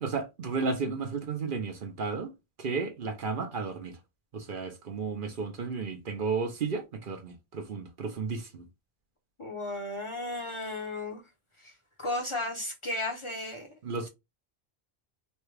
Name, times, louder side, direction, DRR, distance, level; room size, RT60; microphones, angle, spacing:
voice 1, 0.0-2.3 2.6-4.0 4.3-8.6 13.8-14.1, right 4 dB, 55° right, 0.8 m, -33 dB
voice 2, 9.4-11.2 11.6-11.7 12.0-13.7, left 2 dB, 35° left, 0.7 m, -34 dB
3.2 x 2.2 x 3.1 m
omnidirectional pair, 1.1 m